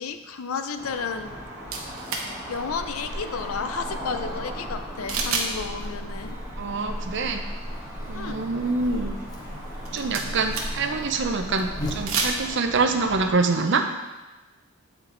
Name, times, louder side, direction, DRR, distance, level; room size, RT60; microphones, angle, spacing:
voice 1, 0.0-1.4 2.5-6.4 8.1-8.4, left 5 dB, 80° left, 9 dB, 0.5 m, -32 dB
sound 1, 0.8-13.3, equal, 15° right, 1.3 m, -39 dB
sound 2, 1.7-2.3 5.1-5.5 5.8-5.9 9.7-10.9 11.9-12.4, right 4 dB, 75° right, 1.0 m, -28 dB
Buzz, 2.5-12.5, equal, 20° left, 0.8 m, -37 dB
voice 2, 6.6-7.4 8.1-9.2 9.9-13.9, right 4 dB, 55° right, 5 dB, 0.6 m, -25 dB
8.8 x 4.5 x 3.9 m, 1.1 s
head